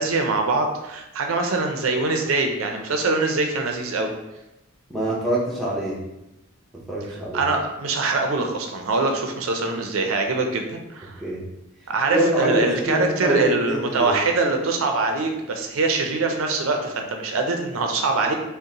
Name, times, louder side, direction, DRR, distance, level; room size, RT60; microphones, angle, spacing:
voice 1, 0.0-4.1 7.3-11.2 11.9-18.3, right 3 dB, 70° right, 4 dB, 0.5 m, -23 dB
voice 2, 4.9-6.0 6.9-7.4 11.2-11.4 12.1-14.2, right 1 dB, ahead, -5 dB, 0.7 m, -24 dB
5.3 x 2.1 x 2.8 m, 0.94 s
head